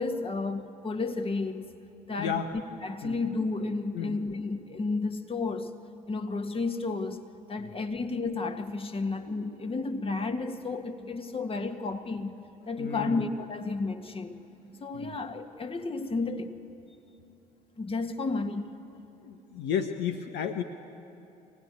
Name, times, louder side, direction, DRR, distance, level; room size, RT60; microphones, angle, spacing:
voice 1, 0.0-1.7 2.1-2.4 2.8-5.7 6.1-12.4 12.7-14.4 14.8-16.5 17.8-18.7, left 3 dB, 30° left, 6 dB, 1.8 m, -32 dB
voice 2, 2.2-2.5 3.0-3.2 3.9-4.1 7.6-7.7 12.8-13.2 14.9-15.2 19.2-20.6, left 7 dB, 60° left, 6 dB, 1.1 m, -32 dB
25.0 x 18.0 x 9.5 m, 2.9 s
hypercardioid pair, 55°, 20 cm